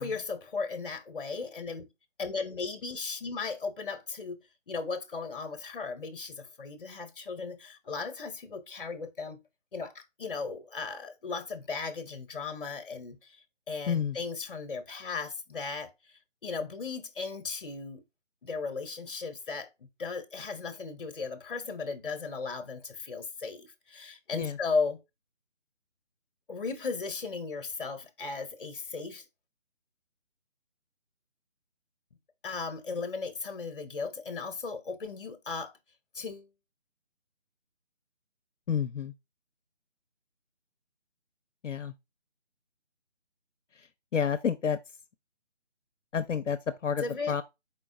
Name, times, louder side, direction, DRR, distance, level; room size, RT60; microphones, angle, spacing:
voice 1, 0.0-1.9 2.2-4.4 4.7-9.4 9.7-13.4 13.7-15.9 16.4-18.0 18.4-25.0 26.5-29.2 32.4-35.7 36.1-36.5 47.0-47.4, left 4 dB, 45° left, 0.8 m, -36 dB
voice 2, 13.9-14.2 24.3-24.6 38.7-39.1 41.6-41.9 43.8-43.9 44.1-44.8 46.1-47.4, left 7 dB, 75° left, 0.5 m, -30 dB
4.4 x 3.8 x 2.5 m
figure-of-eight pair, 155°, 37 cm